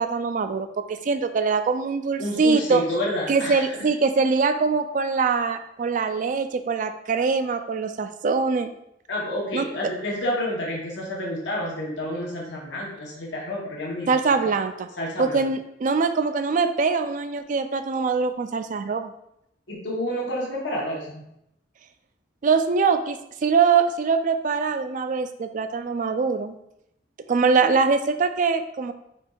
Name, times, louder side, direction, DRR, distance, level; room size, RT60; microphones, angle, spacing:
voice 1, 0.0-2.8 3.3-8.7 9.5-9.6 14.1-14.9 15.2-19.1 22.4-26.5 27.3-28.9, right 5 dB, 45° right, 9 dB, 0.3 m, -23 dB
voice 2, 2.2-3.7 9.1-14.1 15.0-15.5 19.7-21.2, left 1 dB, 70° left, -3 dB, 1.0 m, -29 dB
5.3 x 4.3 x 2.3 m, 0.79 s
head